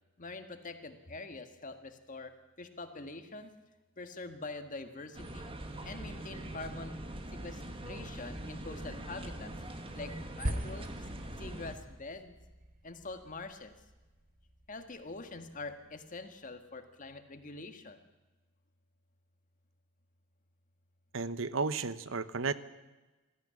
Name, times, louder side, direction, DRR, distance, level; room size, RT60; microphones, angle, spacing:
voice 1, 0.2-3.5 4.0-5.5 5.8-7.0 7.3-9.5 9.9-11.0 11.4-12.4 12.8-13.7 14.7-18.0, left 3 dB, 40° left, 8 dB, 1.7 m, -45 dB
sound 1, 5.1-11.8, right 1 dB, 30° right, 1.8 m, -43 dB
sound 2, 10.4-14.8, equal, 45° right, 1.4 m, -41 dB
voice 2, 21.1-22.5, right 4 dB, 75° right, 14 dB, 0.9 m, -33 dB
20.0 x 14.5 x 9.8 m, 1.2 s
head